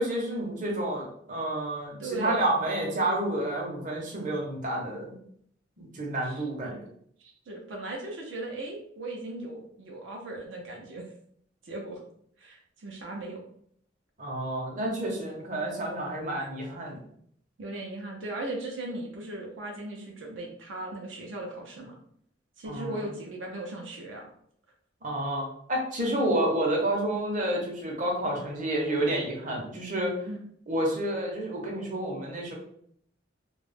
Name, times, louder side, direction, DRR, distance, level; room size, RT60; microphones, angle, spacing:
voice 1, 0.0-5.2 5.8-6.8 14.2-17.0 22.6-23.0 25.0-30.1 30.7-32.5, right 1 dB, 45° right, -2 dB, 0.7 m, -29 dB
voice 2, 2.0-2.5 6.2-6.8 7.2-11.1 11.6-12.0 12.4-13.4 17.6-22.0 22.6-24.3 30.3-30.4, right 2 dB, 85° right, 0 dB, 0.6 m, -38 dB
2.3 x 2.0 x 3.2 m, 0.65 s
head